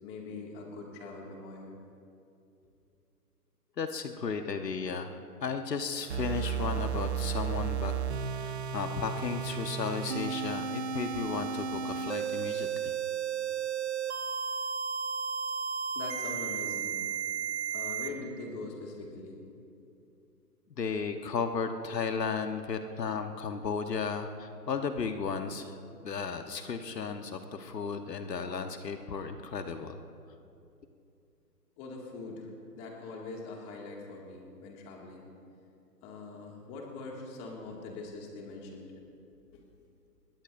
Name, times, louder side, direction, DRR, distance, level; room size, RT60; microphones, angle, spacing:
voice 1, 0.0-1.7 15.9-17.0 17.7-19.4 31.8-32.5 32.8-35.2 36.0-38.9 39.5-39.6, left 3 dB, 20° left, -1 dB, 2.2 m, -42 dB
voice 2, 3.8-7.9 8.4-12.9 20.8-25.8 26.0-30.0, left 5 dB, 80° left, 7 dB, 1.3 m, -34 dB
sound 1, 6.1-18.1, right 7 dB, 45° right, 0.9 m, -33 dB
26.0 x 21.0 x 2.6 m, 2.6 s
hypercardioid pair, 155°, 49 cm